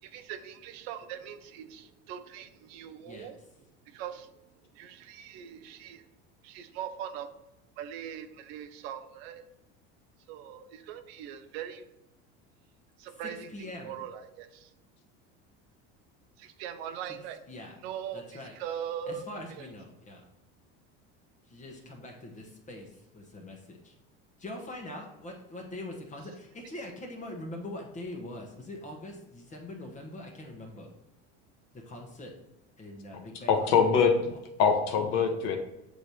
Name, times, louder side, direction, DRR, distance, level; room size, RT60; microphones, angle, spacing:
voice 1, 0.0-3.4 3.9-4.3 4.7-6.0 6.4-7.3 7.8-9.4 10.3-11.9 13.0-14.7 16.4-17.4 17.8-19.2 19.5-19.7, right 9 dB, 85° right, 10 dB, 0.8 m, -41 dB
voice 2, 13.5-14.0 17.5-17.7 18.1-18.5 19.1-20.2 21.5-23.9 24.4-30.9 31.7-32.3 32.8-33.7 34.9-35.3, left 1 dB, 25° left, 1 dB, 1.1 m, -43 dB
voice 3, 33.5-34.3 34.6-35.6, left 6 dB, 65° left, 3 dB, 1.0 m, -23 dB
7.7 x 3.3 x 4.3 m, 0.90 s
supercardioid pair, 120°, 30 cm